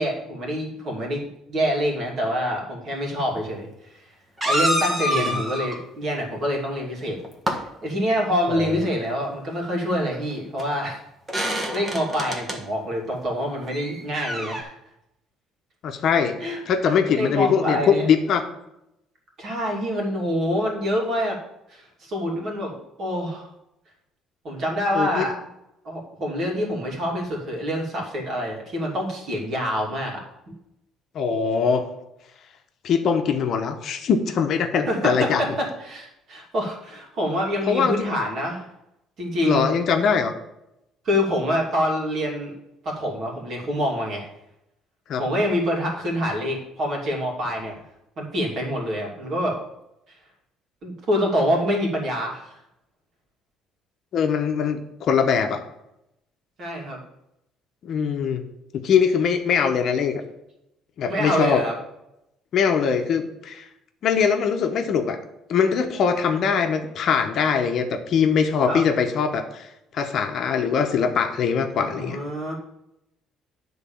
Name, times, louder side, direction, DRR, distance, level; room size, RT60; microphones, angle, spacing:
voice 1, 0.0-4.1 4.4-7.2 7.5-11.0 11.4-14.7 16.4-18.1 19.4-21.4 21.7-23.5 24.4-25.4 25.8-30.2 30.5-30.6 34.9-38.6 39.2-39.6 41.0-42.5 42.8-44.3 45.2-47.7 48.2-49.6 50.8-52.5 56.6-57.0 61.1-61.8 68.7-68.8 71.8-72.5, equal, 45° right, -1 dB, 2.7 m, -26 dB
sound 1, 3.2-3.3 4.4-5.8 7.1-7.6 10.1-10.2 10.6-10.7 11.3-12.6 13.7-14.6, equal, 15° right, 1.4 m, -26 dB
voice 2, 8.5-8.9 15.8-16.4 16.7-18.4 24.9-25.3 31.1-31.8 32.8-35.4 37.7-38.1 39.4-40.3 45.1-45.2 54.1-55.6 57.8-58.4 58.8-60.2 61.0-61.6 62.5-63.7 64.0-65.2 65.5-69.7 69.9-72.2, left 6 dB, 50° left, 5 dB, 0.9 m, -22 dB
9.7 x 4.0 x 7.1 m, 0.86 s
cardioid pair, 145°, 0 cm